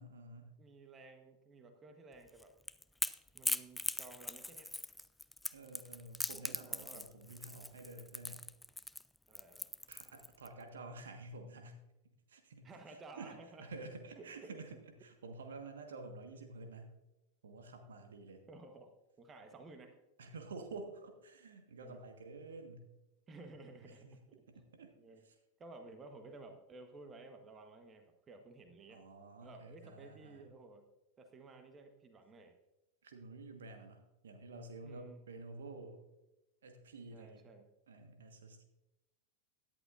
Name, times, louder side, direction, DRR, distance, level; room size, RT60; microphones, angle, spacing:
voice 1, 0.0-0.5 5.5-8.4 9.9-11.8 12.3-16.9 17.4-18.4 20.2-22.9 23.6-24.1 24.5-25.0 25.2-25.3 28.9-30.5 33.0-36.0 36.6-37.5 37.9-38.6, right 3 dB, 65° right, 6 dB, 1.5 m, -50 dB
voice 2, 0.6-2.5 3.3-4.7 6.3-7.0 9.3-9.7 12.6-13.7 14.2-14.5 18.5-18.9 19.2-20.0 21.8-22.0 23.3-24.4 25.0-25.2 25.6-29.0 29.4-30.9 31.2-32.6 34.8-35.2 37.1-37.7, right 3 dB, 20° right, 6 dB, 1.2 m, -54 dB
Crackle / Crack, 2.3-10.5, left 1 dB, 5° left, 0.4 m, -40 dB
17.5 x 10.5 x 2.6 m, 0.97 s
figure-of-eight pair, 90°, 0 cm